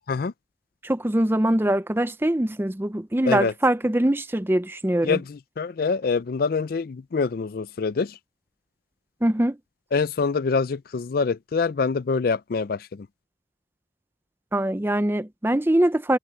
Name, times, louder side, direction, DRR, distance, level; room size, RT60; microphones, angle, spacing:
voice 1, 0.8-5.2 9.2-9.6 14.5-16.2, right 1 dB, 10° right, 0.5 m, -23 dB
voice 2, 5.0-8.1 9.9-12.8, left 4 dB, 50° left, 0.4 m, -25 dB
head